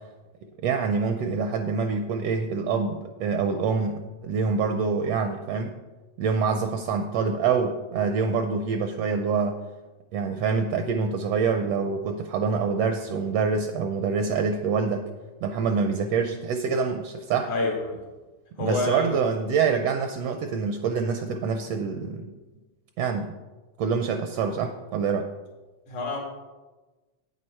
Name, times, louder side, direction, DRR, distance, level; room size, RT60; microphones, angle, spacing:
voice 1, 0.6-5.7 6.2-9.6 10.1-15.1 15.4-17.5 18.6-22.3 23.0-23.3 23.8-25.3, right 5 dB, 75° right, 6 dB, 1.5 m, -26 dB
voice 2, 18.6-19.2 25.9-26.2, left 2 dB, 85° left, -1 dB, 3.7 m, -27 dB
9.2 x 8.9 x 4.4 m, 1.2 s
omnidirectional pair, 3.3 m